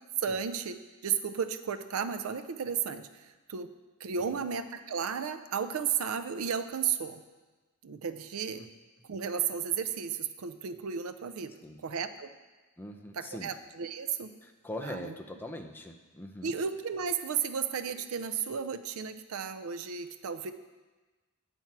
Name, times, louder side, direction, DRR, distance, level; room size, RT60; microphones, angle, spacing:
voice 1, 0.2-0.7 1.0-3.7 4.0-7.2 7.8-8.6 9.0-11.5 11.8-12.3 13.1-14.3 14.8-15.1 16.4-20.5, right 7 dB, 70° right, 10 dB, 0.5 m, -33 dB
voice 2, 12.8-13.5 14.4-16.5, left 1 dB, 10° left, 3 dB, 0.5 m, -42 dB
9.0 x 4.3 x 5.9 m, 1.3 s
head